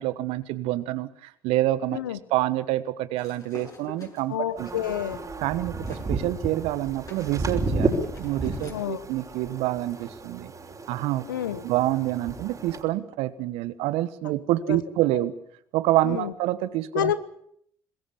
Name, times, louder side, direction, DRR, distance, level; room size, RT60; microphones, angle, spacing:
voice 1, 0.0-2.0 2.3-4.8 5.4-10.5 10.9-11.3 11.6-15.3 15.7-17.2, right 15 dB, 70° right, 15 dB, 1.4 m, -27 dB
sound 1, 3.2-6.1 6.4-8.9, left 3 dB, 35° left, 7.3 m, -46 dB
voice 2, 4.3-5.2 8.7-9.0 11.3-11.6 14.7-14.8 16.0-16.3 16.9-17.2, left 11 dB, 85° left, 15 dB, 1.1 m, -28 dB
sound 2, 4.6-12.8, right 3 dB, 30° right, 5.7 m, -32 dB
25.5 x 21.0 x 7.2 m, 0.67 s
hypercardioid pair, 55°, 11 cm